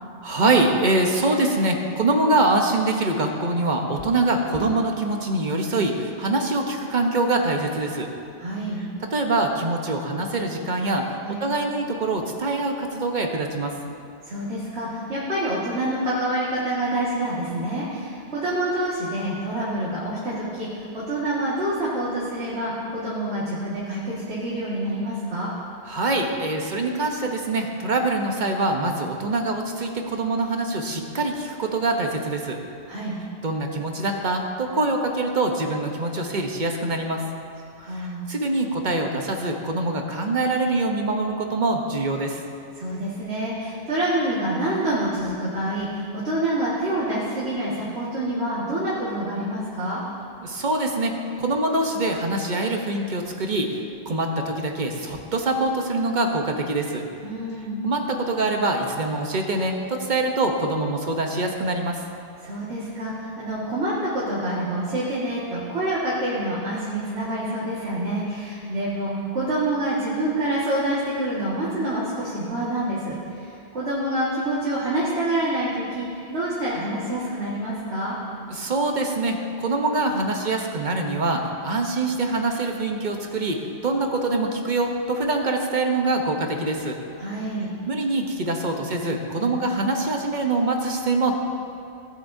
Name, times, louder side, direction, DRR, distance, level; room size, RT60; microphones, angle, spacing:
voice 1, 0.2-8.1 9.1-11.1 11.4-13.8 25.9-32.6 33.4-37.2 37.9-42.4 50.4-51.1 51.4-57.0 57.8-62.0 78.5-87.0 87.9-91.3, right 2 dB, 45° right, 3 dB, 1.0 m, -24 dB
voice 2, 8.4-8.8 11.2-11.4 14.2-20.7 20.9-25.5 32.9-33.2 37.8-38.2 42.8-50.0 57.2-57.8 62.4-78.2 87.2-87.7 89.4-89.6, right 1 dB, 75° right, -9 dB, 2.1 m, -27 dB
17.5 x 8.0 x 2.7 m, 2.5 s
omnidirectional pair, 1.1 m